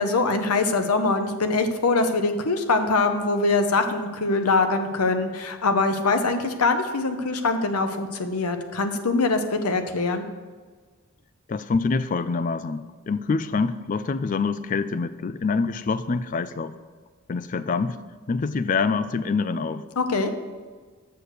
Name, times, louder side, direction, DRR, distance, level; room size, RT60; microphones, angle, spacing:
voice 1, 0.0-10.2 20.0-20.3, left 3 dB, 90° left, 7 dB, 0.8 m, -23 dB
voice 2, 11.5-16.7 17.3-18.0 18.3-19.8, left 4 dB, 35° left, 13 dB, 0.3 m, -25 dB
6.9 x 6.2 x 6.6 m, 1.5 s
head